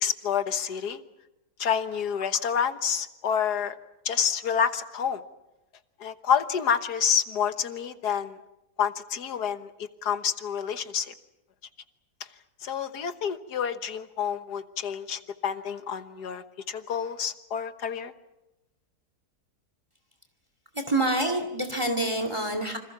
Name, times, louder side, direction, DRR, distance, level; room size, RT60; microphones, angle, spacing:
voice 1, 0.0-1.0 1.6-3.8 4.1-5.2 6.0-8.4 8.8-11.1 12.6-18.1, left 7 dB, 80° left, 10 dB, 1.8 m, -28 dB
voice 2, 20.7-22.8, right 1 dB, 20° right, 6 dB, 2.5 m, -27 dB
28.0 x 26.0 x 6.0 m, 0.93 s
omnidirectional pair, 1.7 m